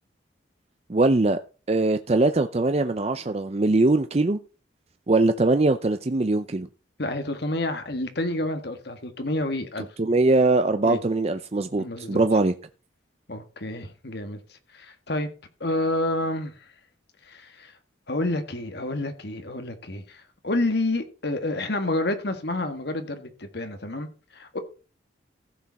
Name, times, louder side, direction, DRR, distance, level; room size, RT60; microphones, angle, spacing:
voice 1, 0.9-1.4 1.7-4.4 5.1-6.7 10.0-12.5, right 2 dB, 35° right, 0.5 m, -21 dB
voice 2, 7.0-9.9 10.8-11.0 11.8-12.2 13.3-15.3 15.6-16.6 17.2-17.7 18.1-24.6, left 2 dB, 55° left, 1.8 m, -29 dB
15.0 x 7.1 x 4.1 m
head